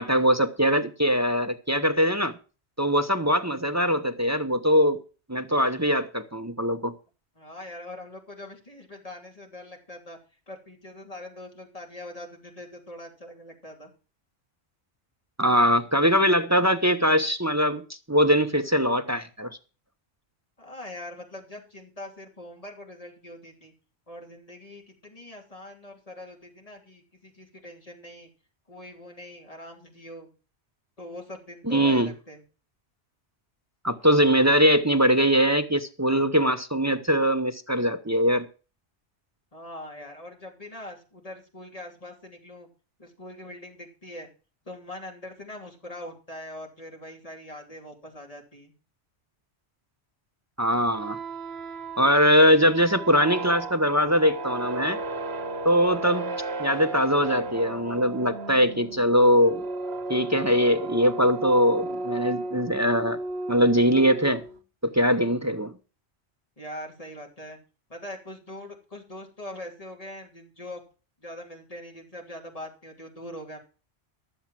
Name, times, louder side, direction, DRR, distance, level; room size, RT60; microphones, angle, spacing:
voice 1, 0.0-2.4 2.8-5.0 5.3-6.9 15.4-17.8 18.1-19.6 31.7-32.1 33.8-38.5 50.6-51.2 52.0-55.0 55.6-59.6 60.1-63.2 63.5-64.4 64.8-65.7, equal, 15° right, 0.8 m, -22 dB
voice 2, 7.3-10.2 10.5-13.9 20.6-23.7 24.1-28.3 28.7-30.3 31.0-32.4 39.5-42.7 43.0-44.3 44.6-48.7 66.6-67.6 67.9-70.8 71.2-73.6, left 1 dB, 30° left, 3.2 m, -42 dB
sound 1, 50.8-64.6, right 2 dB, 65° right, 1.5 m, -34 dB
12.5 x 7.3 x 7.4 m
omnidirectional pair, 1.1 m